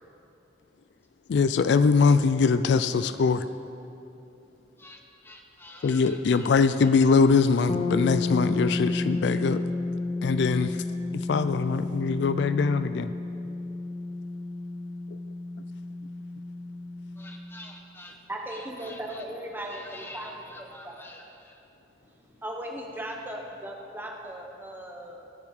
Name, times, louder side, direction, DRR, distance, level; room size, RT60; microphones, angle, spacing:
voice 1, 1.3-3.4 5.8-9.6 10.2-10.8 11.1-13.1, left 4 dB, 65° left, 12 dB, 0.3 m, -22 dB
voice 2, 4.8-6.9 17.2-18.1 18.5-19.2 19.7-21.6, left 1 dB, 10° left, 2 dB, 1.1 m, -47 dB
sound 1, 7.7-17.5, left 3 dB, 30° left, 0.7 m, -32 dB
voice 3, 18.3-20.3 20.6-20.9 22.1-25.2, right 1 dB, 10° right, 0 dB, 1.2 m, -38 dB
18.5 x 7.1 x 4.9 m, 2.8 s
head